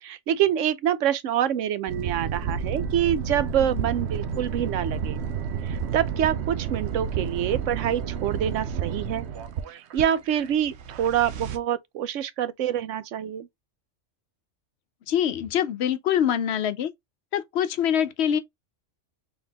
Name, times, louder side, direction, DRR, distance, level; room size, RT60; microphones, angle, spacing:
voice 1, 0.0-5.2 5.6-9.3 9.7-13.5, right 10 dB, 85° right, 1.0 m, -26 dB
sound 1, 1.9-11.6, right 7 dB, 65° right, 0.9 m, -31 dB
voice 2, 15.1-16.9 17.3-18.4, left 9 dB, 65° left, 0.8 m, -24 dB
3.9 x 3.6 x 2.8 m
omnidirectional pair, 1.3 m